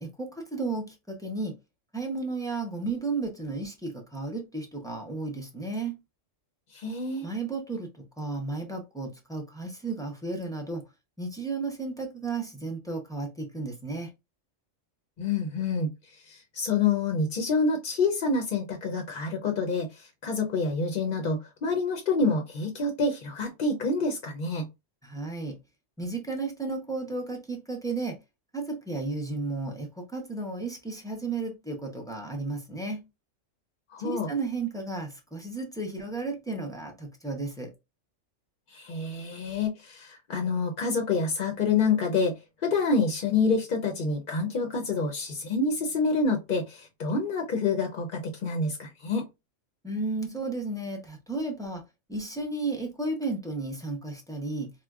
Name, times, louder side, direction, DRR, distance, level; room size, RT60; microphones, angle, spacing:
voice 1, 0.0-1.5 1.9-5.9 7.2-10.8 11.2-14.1 25.0-25.6 26.0-28.2 28.5-33.0 34.0-37.7 49.8-51.8 52.1-54.7, right 3 dB, 5° left, 0.4 m, -33 dB
voice 2, 6.7-7.3 15.2-15.9 16.2-24.7 33.9-34.3 38.7-42.3 42.6-49.3, left 4 dB, 55° left, 0.6 m, -27 dB
4.3 x 2.1 x 2.3 m
omnidirectional pair, 1.3 m